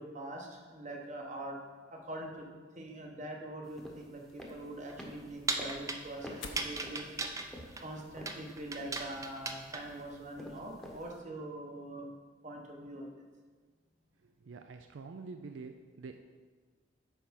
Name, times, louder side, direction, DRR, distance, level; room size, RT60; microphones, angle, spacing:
voice 1, 0.0-1.6 1.9-7.1 7.8-12.1 12.4-13.1, right 1 dB, 40° right, 1 dB, 1.1 m, -43 dB
sound 1, 3.6-11.2, left 1 dB, ahead, 0.9 m, -51 dB
sound 2, 4.3-11.0, left 4 dB, 85° left, 0.8 m, -56 dB
sound 3, 4.9-10.0, right 3 dB, 15° right, 0.5 m, -38 dB
voice 2, 14.2-16.2, right 4 dB, 80° right, 6 dB, 0.4 m, -47 dB
9.0 x 3.5 x 5.8 m, 1.5 s
head